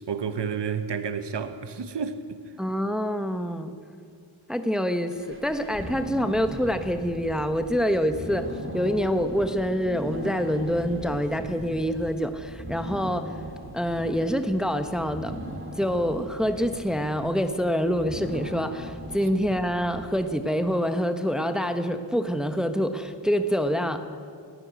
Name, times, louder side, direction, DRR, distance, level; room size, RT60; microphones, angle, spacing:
voice 1, 0.0-2.1, right 6 dB, 65° right, 1.3 m, -30 dB
voice 2, 2.6-3.8 4.5-13.3 13.7-15.4 15.8-24.0, equal, ahead, 1.2 m, -26 dB
sound 1, 5.1-20.5, right 1 dB, 25° right, 3.3 m, -39 dB
18.0 x 15.0 x 9.5 m
cardioid pair, 60°, 45 cm